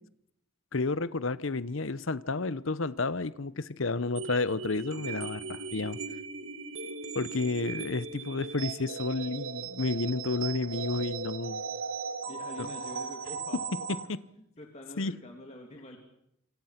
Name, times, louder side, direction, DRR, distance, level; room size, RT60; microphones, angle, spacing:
voice 1, 0.7-6.0 7.1-11.6 12.6-12.7 14.1-14.2 15.0-15.1, left 3 dB, 65° left, 0.9 m, -31 dB
sound 1, 4.2-14.1, right 5 dB, 65° right, 1.7 m, -38 dB
voice 2, 12.3-13.6 14.6-16.0, left 1 dB, 30° left, 3.0 m, -46 dB
27.5 x 25.5 x 5.9 m
head